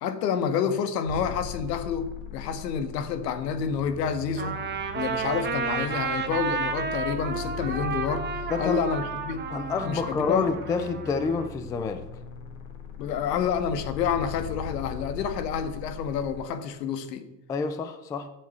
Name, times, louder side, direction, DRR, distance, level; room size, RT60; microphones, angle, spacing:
voice 1, 0.0-4.6 4.9-8.3 8.6-9.5 9.9-10.5 13.0-17.3, left 7 dB, 80° left, 1.8 m, -29 dB
sound 1, 1.1-16.4, left 8 dB, 60° left, 2.7 m, -40 dB
Trumpet, 4.4-11.5, right 5 dB, 20° right, 1.6 m, -32 dB
voice 2, 8.5-8.8 9.5-12.1 17.5-18.3, left 4 dB, 10° left, 0.3 m, -28 dB
12.5 x 7.5 x 8.0 m
supercardioid pair, 130°, 48 cm